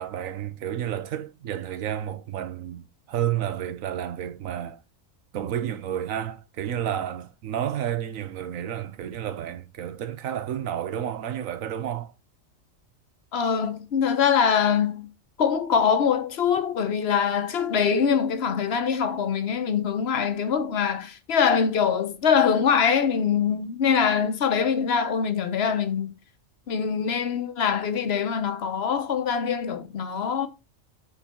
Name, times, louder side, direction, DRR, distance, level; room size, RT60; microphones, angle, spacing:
voice 1, 0.0-4.8 5.3-12.1, right 10 dB, 85° right, 1.2 m, -31 dB
voice 2, 13.3-15.1 15.4-26.1 26.7-30.5, left 7 dB, 55° left, 1.0 m, -23 dB
8.0 x 4.0 x 4.3 m
omnidirectional pair, 1.4 m